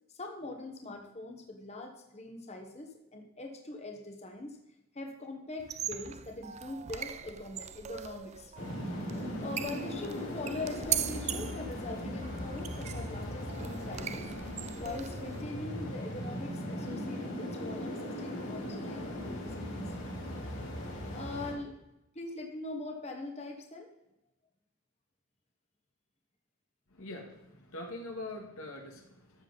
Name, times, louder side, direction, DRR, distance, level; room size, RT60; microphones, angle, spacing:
voice 1, 0.2-4.6 4.9-8.5 9.1-14.3 14.8-19.9 21.1-21.8 22.1-23.9, left 2 dB, 30° left, 3 dB, 1.3 m, -42 dB
sound 1, 5.6-15.4, right 10 dB, 30° right, 0.4 m, -40 dB
sound 2, 8.5-21.5, equal, 55° left, 3.5 m, -38 dB
voice 2, 26.9-29.4, left 2 dB, 75° left, 1 dB, 1.8 m, -43 dB
13.0 x 7.5 x 4.0 m, 0.88 s
head